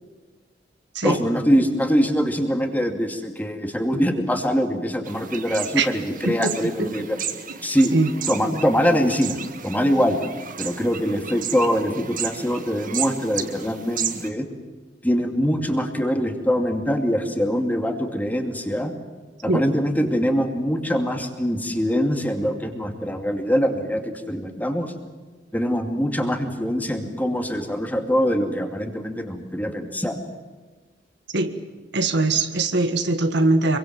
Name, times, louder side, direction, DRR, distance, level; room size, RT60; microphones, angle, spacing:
voice 1, 1.0-7.2 7.6-7.9 8.3-9.4 9.6-10.2 10.6-14.5 15.0-18.9 19.4-24.9 25.5-30.2, equal, 10° left, 5 dB, 2.5 m, -23 dB
sound 1, 5.1-14.3, right 8 dB, 45° right, 1.6 m, -34 dB
voice 2, 6.2-6.9 7.9-8.1 19.5-19.6 31.3-31.5 31.9-33.8, right 2 dB, 65° right, 8 dB, 1.7 m, -21 dB
26.0 x 23.5 x 7.6 m, 1.3 s
head